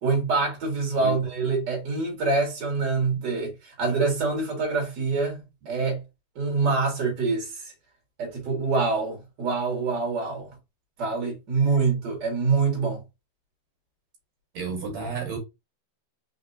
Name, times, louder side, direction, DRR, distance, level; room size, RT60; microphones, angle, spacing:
voice 1, 0.0-6.0 6.4-7.7 8.2-10.5 11.0-13.0, right 4 dB, 40° right, 2.0 m, -25 dB
voice 2, 14.5-15.4, right 4 dB, 70° right, 2.4 m, -31 dB
4.3 x 3.5 x 2.7 m
omnidirectional pair, 3.3 m